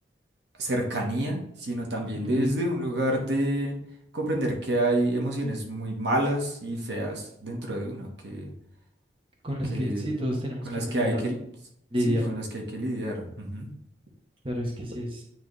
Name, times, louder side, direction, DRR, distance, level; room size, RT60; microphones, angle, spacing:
voice 1, 0.6-3.8 4.1-8.5 9.7-10.1 10.6-11.4 12.1-13.7, right 1 dB, 75° right, 0 dB, 1.4 m, -28 dB
voice 2, 9.4-11.2 11.9-12.3 14.4-15.2, equal, 30° right, 0 dB, 1.2 m, -29 dB
9.3 x 3.4 x 3.3 m, 0.73 s
head